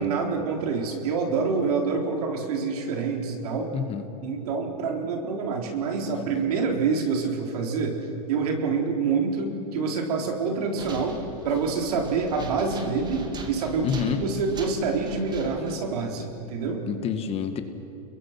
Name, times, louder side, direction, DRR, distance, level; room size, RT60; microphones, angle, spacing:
voice 1, 0.0-3.7 4.2-8.0 8.3-11.2 11.4-16.8, right 4 dB, 75° right, 2 dB, 4.1 m, -27 dB
voice 2, 3.7-4.0 13.8-14.2 16.9-17.6, left 7 dB, 30° left, 8 dB, 1.9 m, -27 dB
sound 1, 10.8-16.0, right 3 dB, 20° right, 2.5 m, -41 dB
30.0 x 22.0 x 6.1 m, 2.9 s
supercardioid pair, 125°, 20 cm